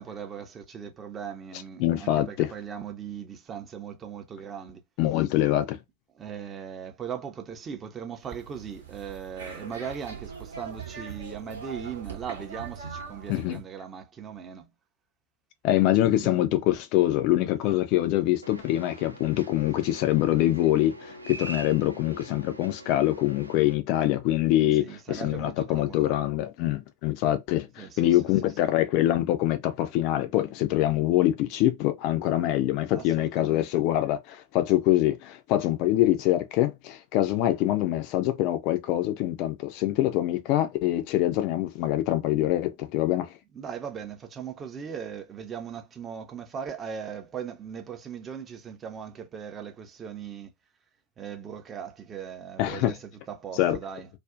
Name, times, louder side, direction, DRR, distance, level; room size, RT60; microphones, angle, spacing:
voice 1, 0.0-4.8 6.2-14.7 16.0-16.5 24.7-26.1 27.8-28.1 28.6-28.7 32.9-33.6 43.5-50.5 51.2-54.1, right 7 dB, 25° right, 0.5 m, -39 dB
voice 2, 1.8-2.5 5.0-5.8 13.3-13.6 15.6-43.3 52.6-52.9 53.6-53.8, left 14 dB, 45° left, 0.3 m, -24 dB
sound 1, 8.2-13.6, right 5 dB, 65° right, 0.8 m, -41 dB
sound 2, 18.4-23.7, right 2 dB, 80° right, 0.4 m, -43 dB
2.5 x 2.0 x 2.4 m
figure-of-eight pair, 90°, 0 cm